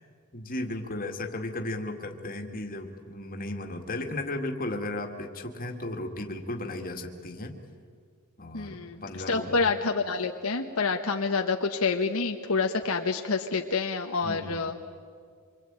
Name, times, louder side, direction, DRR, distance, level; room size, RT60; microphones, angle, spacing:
voice 1, 0.3-7.6 8.4-9.6 14.2-14.6, left 1 dB, 40° left, 4 dB, 2.2 m, -35 dB
voice 2, 8.5-14.7, left 4 dB, 75° left, 4 dB, 1.2 m, -28 dB
26.5 x 23.5 x 8.9 m, 2.1 s
head